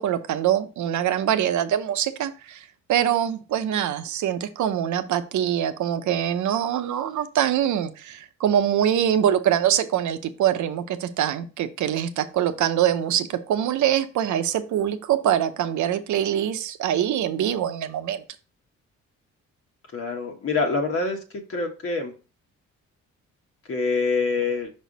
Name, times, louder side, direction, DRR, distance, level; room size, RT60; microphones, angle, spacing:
voice 1, 0.0-18.2, right 10 dB, 70° right, 0.8 m, -24 dB
voice 2, 19.9-21.2 21.5-22.1 23.7-24.7, left 4 dB, 50° left, 1.3 m, -25 dB
5.6 x 4.2 x 4.0 m
cardioid pair, 90°, 30 cm